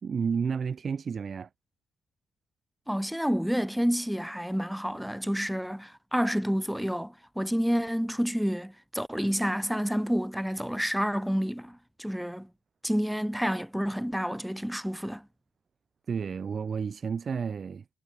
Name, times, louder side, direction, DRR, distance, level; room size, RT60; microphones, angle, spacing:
voice 1, 0.0-1.5 16.1-17.9, right 6 dB, 45° right, 0.7 m, -31 dB
voice 2, 2.9-12.5 12.8-15.3, equal, ahead, 0.9 m, -29 dB
cardioid pair, 90°, 0 cm